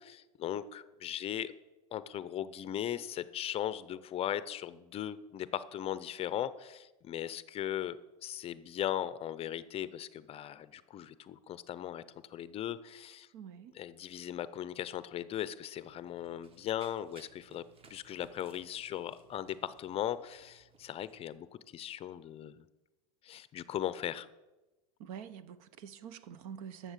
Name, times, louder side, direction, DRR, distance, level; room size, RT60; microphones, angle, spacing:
voice 1, 0.0-1.5 1.9-12.0 12.3-13.3 13.7-17.6 17.9-22.6 23.2-24.3, left 11 dB, 30° left, 0.5 m, -38 dB
voice 2, 13.3-13.7 25.0-26.9, right 8 dB, 65° right, 0.9 m, -46 dB
Run, 15.8-21.4, right 5 dB, 30° right, 1.2 m, -61 dB
11.5 x 7.2 x 7.4 m
supercardioid pair, 125°, 19 cm